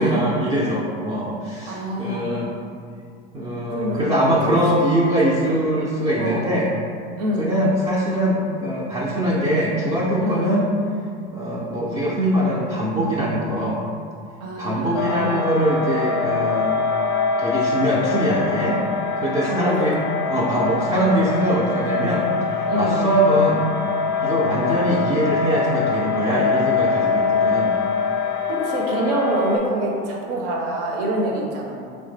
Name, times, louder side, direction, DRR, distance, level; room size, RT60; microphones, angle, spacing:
voice 1, 0.0-2.5 3.3-6.7 7.4-10.7 11.3-13.8 14.6-16.8 17.4-18.8 19.2-20.0 20.3-23.7 24.2-27.7, equal, 15° right, -6 dB, 0.4 m, -22 dB
voice 2, 1.6-2.4 3.7-5.6 6.2-6.5 7.2-7.6 10.2-10.5 14.4-15.5 19.4-19.9 21.4-21.7 22.7-23.0 28.5-31.8, right 1 dB, 50° right, -1 dB, 0.7 m, -26 dB
sound 1, 15.0-29.6, left 5 dB, 45° left, 0.5 m, -24 dB
3.2 x 2.1 x 3.2 m, 2.3 s
hypercardioid pair, 85°, 31 cm